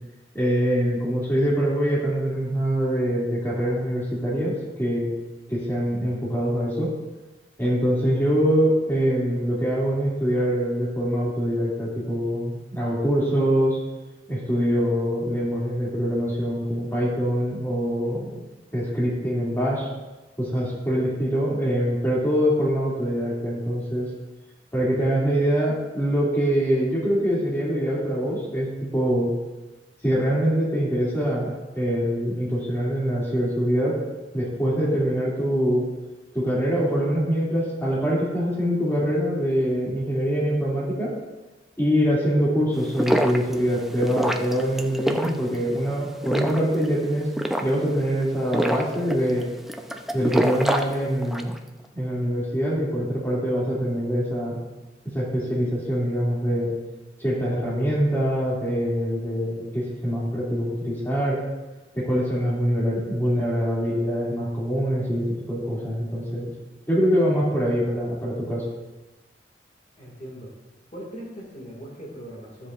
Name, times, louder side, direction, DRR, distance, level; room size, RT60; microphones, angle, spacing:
voice 1, 0.3-5.1 5.5-6.9 7.6-13.8 14.3-18.4 18.7-19.9 20.4-24.1 24.7-28.7 28.9-29.3 30.0-34.0 34.3-35.8 36.3-41.1 41.8-47.3 47.6-49.5 50.1-51.5 51.9-54.6 55.1-56.7 57.2-61.4 61.9-66.5 66.9-68.6, equal, 15° left, -6 dB, 2.4 m, -24 dB
sound 1, 42.8-51.6, equal, ahead, 0.5 m, -27 dB
voice 2, 70.0-70.5 70.9-72.7, equal, 45° left, -3 dB, 2.0 m, -39 dB
13.5 x 7.5 x 2.4 m, 1.1 s
head